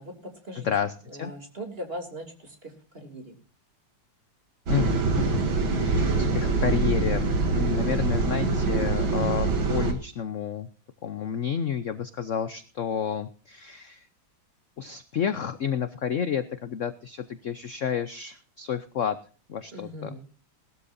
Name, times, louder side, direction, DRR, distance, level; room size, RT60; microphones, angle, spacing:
voice 1, 0.0-0.7 1.1-3.3 19.7-20.2, equal, 30° right, 3 dB, 3.2 m, -40 dB
voice 2, 0.6-1.3 4.7-5.3 5.7-10.7 11.0-14.1 14.8-19.2 19.5-20.1, left 8 dB, 55° left, 11 dB, 0.8 m, -30 dB
sound 1, 4.7-9.9, right 3 dB, 80° right, 2.8 m, -24 dB
20.0 x 13.0 x 2.7 m, 0.37 s
omnidirectional pair, 2.1 m